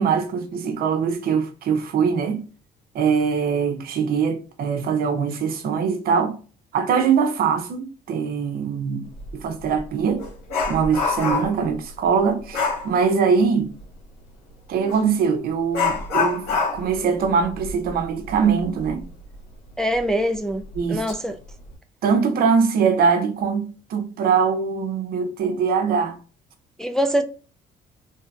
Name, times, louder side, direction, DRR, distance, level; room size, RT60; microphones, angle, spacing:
voice 1, 0.0-2.4 2.9-6.4 6.7-10.3 10.7-13.7 14.7-16.4 16.7-19.1 20.8-21.0 22.0-26.2, right 6 dB, 60° right, 0.8 m, -22 dB
Dog, 9.2-9.3 9.7-11.7 12.5-12.9 14.9-15.0 15.7-19.0 19.3-19.4 20.0-20.1 20.7-21.1 21.5-21.7, left 4 dB, 90° left, 1.6 m, -26 dB
voice 2, 19.8-21.4 26.8-27.2, equal, 5° left, 0.3 m, -23 dB
3.3 x 2.8 x 3.4 m
cardioid pair, 110°, 17 cm